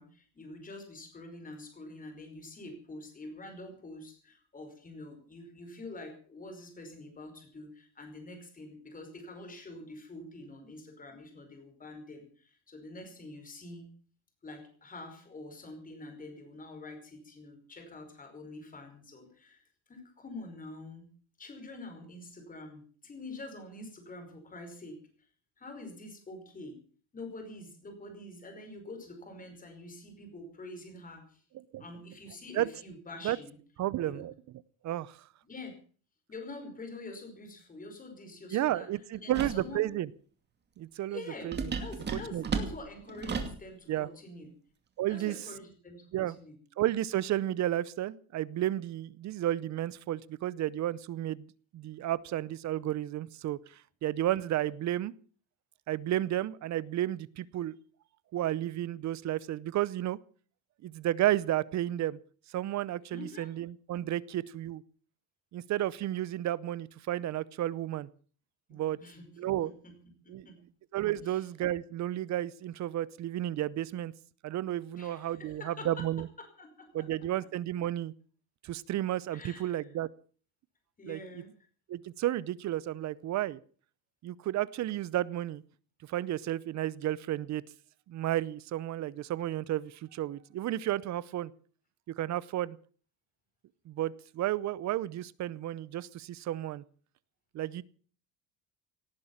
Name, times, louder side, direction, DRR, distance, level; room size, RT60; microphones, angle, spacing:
voice 1, 0.0-13.9 14.4-21.1 21.4-25.0 25.6-26.8 27.1-31.4 31.8-33.6 34.0-34.2 35.4-35.8 36.3-39.8 41.1-44.5 45.1-46.6 63.1-63.6 68.7-70.7 71.2-71.4 74.9-75.9 76.4-77.1 79.3-79.9 81.0-81.5, left 2 dB, 20° left, 5 dB, 5.2 m, -46 dB
voice 2, 33.8-34.3 34.8-35.2 38.5-40.1 40.8-41.7 42.1-42.6 43.9-44.1 45.0-45.4 46.1-46.4 46.8-53.6 54.0-55.1 55.9-57.8 58.3-60.2 60.8-62.2 62.5-64.8 65.5-68.1 68.7-69.0 69.4-69.7 70.3-70.5 70.9-74.1 74.4-76.3 76.9-78.1 78.6-80.1 81.0-81.2 81.9-83.6 84.2-85.6 86.0-87.6 88.1-91.5 92.2-92.8 93.9-96.8 97.5-97.8, right 13 dB, 40° right, 21 dB, 0.7 m, -32 dB
sound 1, 39.3-39.7 41.5-43.6, right 5 dB, 25° right, 2.5 m, -34 dB
18.5 x 11.0 x 7.2 m, 0.43 s
cardioid pair, 160°, 41 cm